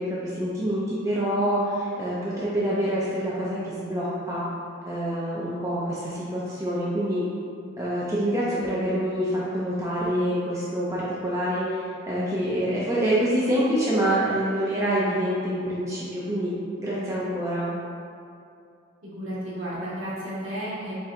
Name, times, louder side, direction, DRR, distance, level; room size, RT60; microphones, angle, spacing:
voice 1, 0.0-4.4 4.9-7.2 7.8-16.5 16.8-17.7, equal, 15° right, -7 dB, 0.4 m, -26 dB
voice 2, 19.0-20.9, equal, 60° right, -9 dB, 1.3 m, -33 dB
4.2 x 3.7 x 2.4 m, 2.5 s
head